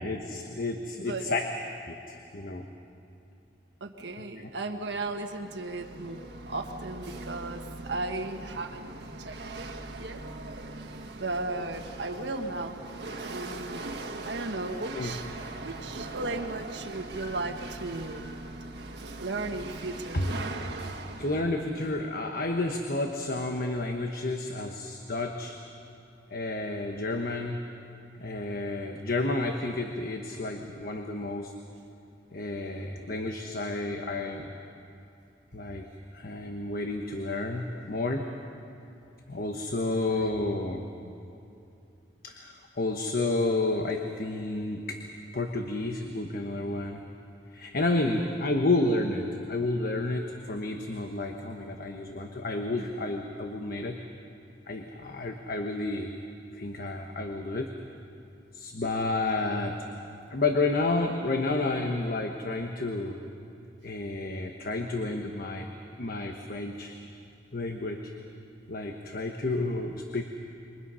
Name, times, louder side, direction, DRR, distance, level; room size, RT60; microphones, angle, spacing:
voice 1, 0.0-1.5 1.8-2.6 4.4-4.5 15.0-15.1 20.1-20.3 21.2-25.6 26.3-27.6 28.2-31.5 32.3-34.5 35.5-35.8 36.1-38.3 39.3-40.8 42.2-45.0 45.3-47.0 47.5-54.0 54.7-56.1 56.5-57.7 58.5-59.8 60.3-63.2 63.8-65.7 66.0-67.0 67.5-68.1 68.7-70.2, left 2 dB, 55° left, 4 dB, 1.2 m, -30 dB
voice 2, 1.0-1.3 3.8-6.2 6.5-8.9 9.2-9.7 10.0-10.2 11.2-12.8 13.2-15.3 15.6-18.3 19.2-20.2 40.1-40.3, right 2 dB, 85° right, 5 dB, 1.6 m, -36 dB
Chatter / Hiss / Rattle, 4.5-21.4, right 2 dB, 70° right, 1.7 m, -41 dB
28.0 x 24.0 x 5.7 m, 2.7 s
head